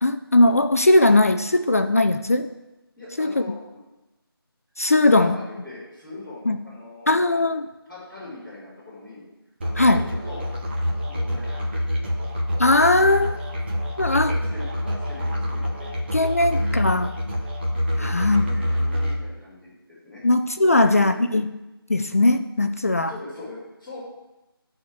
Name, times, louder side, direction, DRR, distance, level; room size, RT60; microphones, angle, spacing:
voice 1, 0.0-2.5 3.2-3.3 4.8-5.4 6.5-6.6 7.1-7.7 9.8-10.0 12.6-13.4 14.0-14.3 16.1-17.1 18.0-18.5 20.2-21.5 21.9-23.1, left 2 dB, 35° left, 8 dB, 0.4 m, -19 dB
voice 2, 2.9-3.8 4.9-7.4 7.9-9.2 9.6-10.5 11.1-12.1 14.0-16.8 17.9-18.1 18.4-20.2 20.6-21.1 22.9-24.0, left 2 dB, 5° right, -17 dB, 4.1 m, -41 dB
Musical instrument, 9.6-19.2, equal, 25° right, 1.3 m, -26 dB
12.5 x 4.3 x 6.2 m, 1.0 s
figure-of-eight pair, 165°, 13 cm